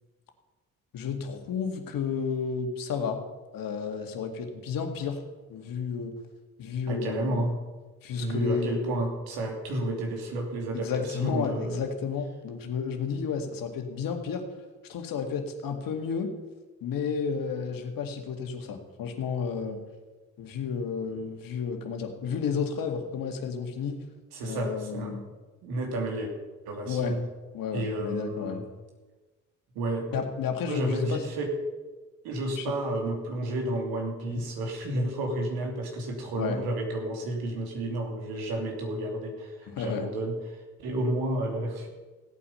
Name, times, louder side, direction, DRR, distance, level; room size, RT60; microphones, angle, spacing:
voice 1, 0.9-3.2 3.5-5.2 5.5-6.1 6.6-7.5 8.0-9.0 10.7-14.4 14.9-16.3 16.8-19.8 20.4-24.0 24.4-25.2 26.9-27.2 27.5-28.6 30.1-31.2 32.6-32.7 34.3-34.4 36.4-36.6 39.7-40.1, left 6 dB, 65° left, 4 dB, 2.0 m, -32 dB
voice 2, 6.9-7.5 8.2-11.8 24.3-25.2 25.6-26.3 26.6-27.2 27.7-28.7 29.7-30.2 30.6-31.5 32.2-41.9, right 1 dB, 75° right, 1 dB, 3.0 m, -31 dB
17.0 x 8.6 x 5.6 m, 1.3 s
hypercardioid pair, 50°, 37 cm